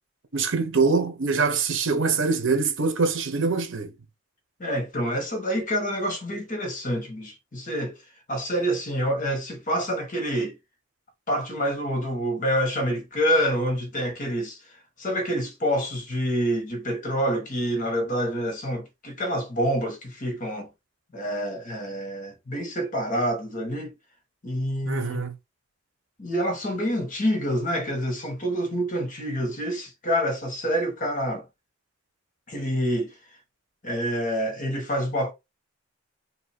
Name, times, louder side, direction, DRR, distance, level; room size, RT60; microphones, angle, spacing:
voice 1, 0.3-3.9 24.8-25.3, right 4 dB, 65° right, 1.0 m, -24 dB
voice 2, 4.6-8.0 8.3-10.6 11.3-14.6 15.0-20.7 21.1-23.9 24.4-25.2 26.2-31.4 32.5-33.1 33.8-35.3, equal, 40° left, 1.4 m, -27 dB
3.0 x 2.8 x 4.4 m
head